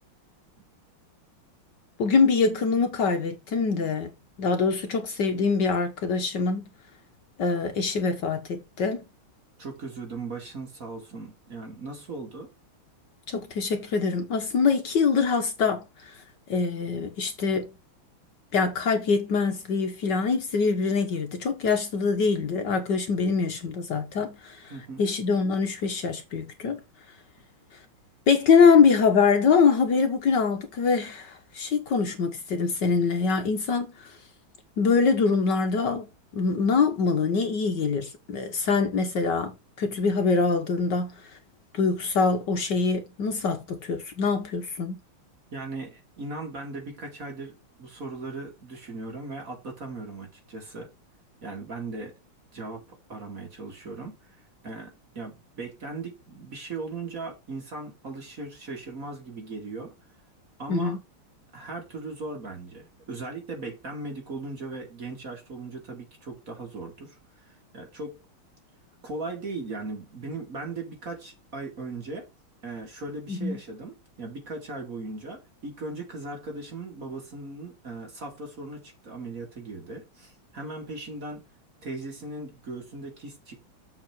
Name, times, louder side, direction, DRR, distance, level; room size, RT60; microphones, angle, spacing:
voice 1, 2.0-4.1 4.4-6.6 7.4-9.0 13.3-16.1 16.5-17.7 18.5-24.7 25.0-26.8 28.3-34.2 34.8-36.1 36.3-41.1 41.7-45.0 60.7-61.0 73.3-73.6, left 5 dB, 60° left, 1.5 m, -24 dB
voice 2, 9.6-12.5 24.7-25.0 45.5-50.9 51.4-52.1 52.5-59.9 60.6-61.0 61.5-67.2 67.7-68.2 69.0-72.3 72.6-81.5 81.8-83.7, right 3 dB, 40° right, 2.9 m, -38 dB
7.2 x 4.9 x 6.0 m
omnidirectional pair, 2.4 m